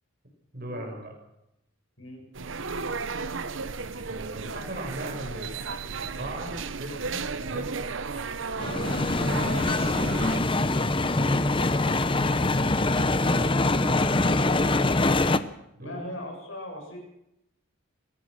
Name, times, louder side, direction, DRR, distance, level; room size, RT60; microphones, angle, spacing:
voice 1, 0.5-1.1 4.0-5.7 6.0-7.7 8.1-8.3 10.9-11.9 12.8-13.4 15.8-16.0, right 1 dB, 45° right, 2 dB, 6.7 m, -39 dB
sound 1, 2.3-10.4, right 4 dB, 65° right, 0.9 m, -34 dB
sound 2, 8.6-15.4, left 2 dB, 25° left, 0.8 m, -24 dB
voice 2, 9.4-10.2 15.8-17.0, left 1 dB, 70° left, 2 dB, 7.7 m, -39 dB
24.0 x 17.0 x 6.6 m, 0.84 s
head